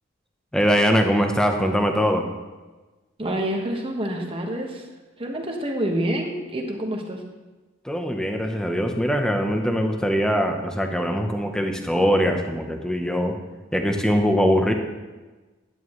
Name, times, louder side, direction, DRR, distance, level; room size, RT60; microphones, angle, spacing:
voice 1, 0.5-2.3 7.8-13.4 13.7-14.7, equal, 5° left, 4 dB, 0.8 m, -22 dB
voice 2, 3.2-4.8 5.2-7.2, right 1 dB, 25° right, 1 dB, 1.3 m, -27 dB
11.0 x 9.2 x 3.2 m, 1.2 s
head